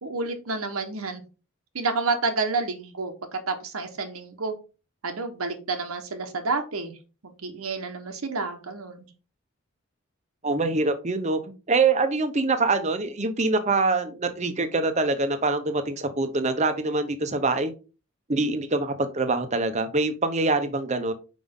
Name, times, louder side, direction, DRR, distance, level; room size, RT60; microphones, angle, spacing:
voice 1, 0.0-1.2 1.7-4.5 5.0-6.9 7.2-9.0, right 3 dB, 90° right, 5 dB, 1.1 m, -29 dB
voice 2, 10.4-11.4 11.7-17.7 18.3-21.1, right 3 dB, 35° right, 9 dB, 0.8 m, -24 dB
5.6 x 5.0 x 3.6 m, 0.32 s
head